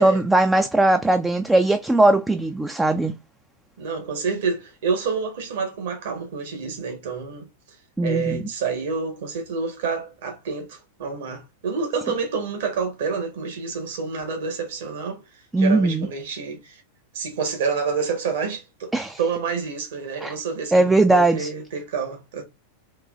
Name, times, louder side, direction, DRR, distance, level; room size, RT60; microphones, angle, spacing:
voice 1, 0.0-3.1 8.0-8.4 15.5-16.1 18.9-19.2 20.2-20.3 20.7-21.5, right 2 dB, 10° right, 0.4 m, -19 dB
voice 2, 3.8-7.5 8.0-15.2 15.6-16.8 17.1-22.4, right 5 dB, 55° right, 1.7 m, -28 dB
3.8 x 3.0 x 3.7 m
figure-of-eight pair, 90°, 0 cm